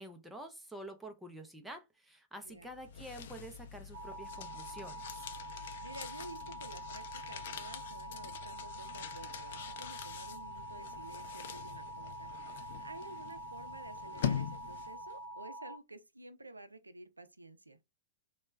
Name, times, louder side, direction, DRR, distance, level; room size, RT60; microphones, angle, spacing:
voice 1, 0.0-5.2, right 1 dB, 5° right, 0.6 m, -48 dB
sound 1, 2.6-15.1, left 8 dB, 55° left, 0.4 m, -44 dB
sound 2, 3.9-15.8, right 1 dB, 40° right, 0.6 m, -46 dB
voice 2, 5.8-17.8, right 2 dB, 85° right, 0.4 m, -51 dB
3.1 x 2.2 x 3.1 m
figure-of-eight pair, 105°, 0 cm